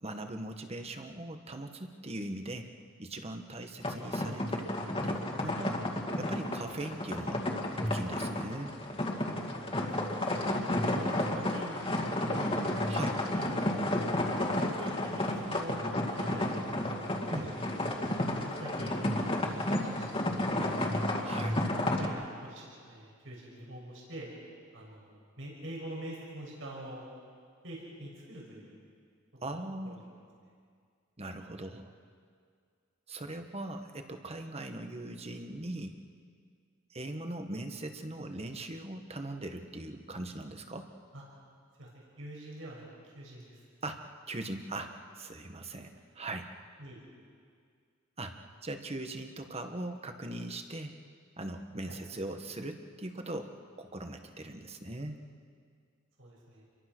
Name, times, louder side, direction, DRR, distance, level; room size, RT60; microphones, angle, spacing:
voice 1, 0.0-2.7 3.0-4.7 5.0-5.8 6.2-7.4 7.8-8.7 12.9-13.1 17.3-17.5 21.2-21.6 29.4-30.0 31.2-31.9 33.1-35.9 36.9-40.9 43.8-46.5 48.2-48.4 48.6-50.9 51.4-53.5 53.8-55.2, right 1 dB, 30° right, 6 dB, 1.6 m, -40 dB
sound 1, 3.8-22.1, left 1 dB, 30° left, 2.4 m, -32 dB
voice 2, 10.0-12.4 13.4-14.1 14.6-15.8 16.1-16.7 17.1-17.9 18.3-20.8 21.4-24.3 24.7-27.0 27.6-28.8 29.4-29.6 29.8-30.0 41.1-41.2 41.8-43.6 46.8-47.0 51.9-52.0 56.2-56.6, right 1 dB, 75° right, -3 dB, 6.9 m, -45 dB
29.0 x 23.5 x 6.3 m, 2.1 s
head